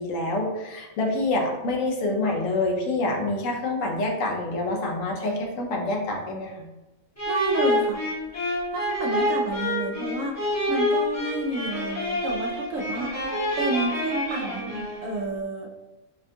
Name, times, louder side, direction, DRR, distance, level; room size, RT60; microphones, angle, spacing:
voice 1, 0.0-6.6, left 2 dB, 70° left, 1 dB, 1.0 m, -27 dB
sound 1, 7.2-15.2, left 1 dB, 15° left, 0.7 m, -27 dB
voice 2, 7.3-8.0 8.7-10.4 10.7-13.2 13.6-15.7, right 2 dB, 75° right, 1 dB, 0.9 m, -30 dB
4.2 x 2.2 x 2.7 m, 1.0 s
omnidirectional pair, 1.4 m